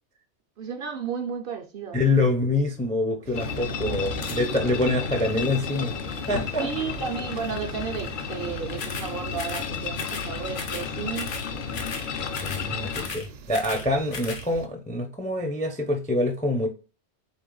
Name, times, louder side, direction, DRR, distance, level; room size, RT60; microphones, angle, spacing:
voice 1, 0.6-2.2 3.7-4.2 6.6-11.3, right 6 dB, 60° right, 0.7 m, -33 dB
voice 2, 1.9-6.7 12.4-16.7, left 2 dB, 10° left, 0.4 m, -26 dB
sound 1, 3.2-14.7, right 6 dB, 80° right, 0.9 m, -41 dB
sound 2, 3.3-13.1, left 7 dB, 55° left, 0.6 m, -33 dB
sound 3, 4.2-4.4 8.8-9.1 9.4-9.7 10.0-10.3 10.5-10.9 11.1-11.5 11.7-12.1 12.3-12.7 12.9-13.9 14.1-14.4, left 5 dB, 80° left, 1.2 m, -36 dB
4.1 x 3.3 x 3.8 m
omnidirectional pair, 1.2 m